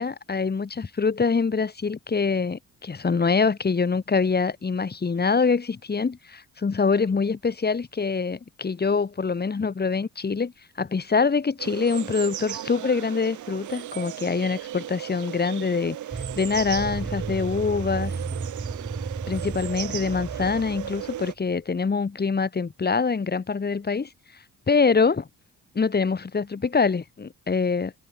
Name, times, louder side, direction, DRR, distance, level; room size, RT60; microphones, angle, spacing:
voice 1, 0.0-10.5 10.8-16.0 16.4-18.1 19.3-24.1 24.7-25.3 25.7-27.9, left 5 dB, 30° left, 6.1 m, -24 dB
sound 1, 11.6-21.3, right 12 dB, 75° right, 4.8 m, -36 dB
sound 2, 16.1-21.3, right 4 dB, 25° right, 2.3 m, -34 dB
open air
cardioid pair, 90°, 30 cm